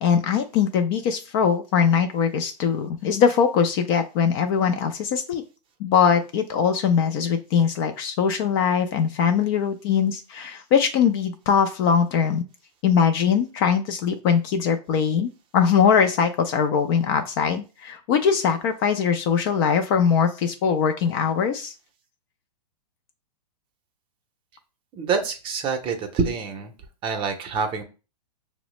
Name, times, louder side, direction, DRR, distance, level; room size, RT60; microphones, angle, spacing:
voice 1, 0.0-5.4 5.8-12.5 12.8-21.7, left 7 dB, 35° left, 7 dB, 0.4 m, -21 dB
voice 2, 24.9-26.7 27.0-27.8, right 5 dB, 25° right, 5 dB, 0.6 m, -26 dB
6.0 x 2.0 x 3.0 m, 0.32 s
hypercardioid pair, 125°, 21 cm